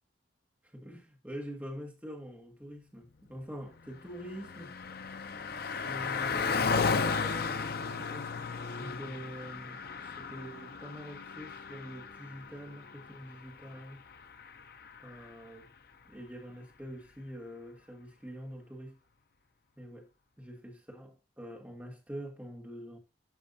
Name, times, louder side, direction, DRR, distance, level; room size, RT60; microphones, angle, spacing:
voice 1, 0.7-4.8 5.8-14.0 15.0-15.7 16.0-19.0 19.8-20.1 20.4-23.0, equal, 10° right, 1.7 m, -45 dB
Car passing by, 3.7-15.4, left 5 dB, 50° left, 0.5 m, -35 dB
11.5 x 5.7 x 2.7 m
head